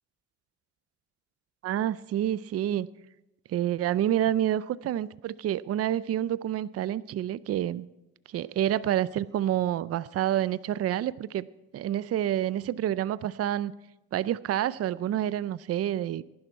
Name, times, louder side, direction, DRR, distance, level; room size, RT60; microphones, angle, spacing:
voice 1, 1.6-2.9 3.5-7.9 8.3-11.5 11.7-13.7 14.1-16.2, right 11 dB, 55° right, 18 dB, 0.5 m, -28 dB
18.0 x 11.0 x 4.5 m, 0.95 s
cardioid pair, 90°, 30 cm